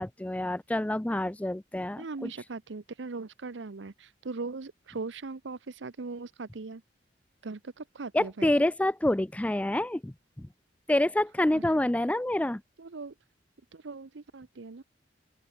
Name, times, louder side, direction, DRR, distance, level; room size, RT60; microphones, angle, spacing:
voice 1, 0.0-2.3 8.1-10.5 10.9-12.6, left 1 dB, 10° left, 0.4 m, -27 dB
voice 2, 2.0-6.8 7.4-8.7 11.5-11.8 12.8-13.1 13.7-14.8, right 3 dB, 85° right, 0.8 m, -39 dB
open air
head